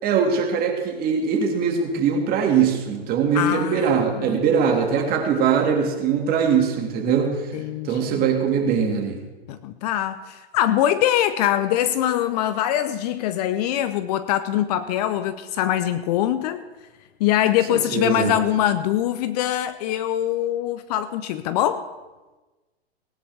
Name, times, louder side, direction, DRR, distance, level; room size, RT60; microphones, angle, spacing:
voice 1, 0.0-7.3 7.8-9.2 17.7-18.3, right 6 dB, 30° right, 2 dB, 2.2 m, -21 dB
voice 2, 3.3-3.9 4.2-4.4 7.5-8.2 9.5-16.6 17.2-21.9, left 12 dB, 40° left, 12 dB, 0.6 m, -23 dB
18.5 x 11.0 x 3.5 m, 1.2 s
hypercardioid pair, 125°, 31 cm